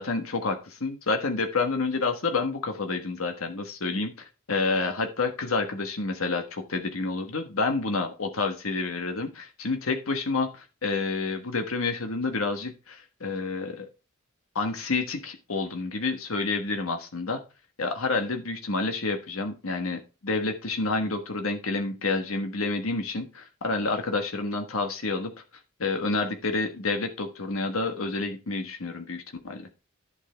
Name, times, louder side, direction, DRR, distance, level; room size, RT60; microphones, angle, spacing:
voice 1, 0.0-13.9 14.5-17.4 17.8-25.3 25.8-29.6, left 3 dB, 75° left, 5 dB, 1.4 m, -29 dB
11.0 x 7.4 x 3.4 m, 0.30 s
head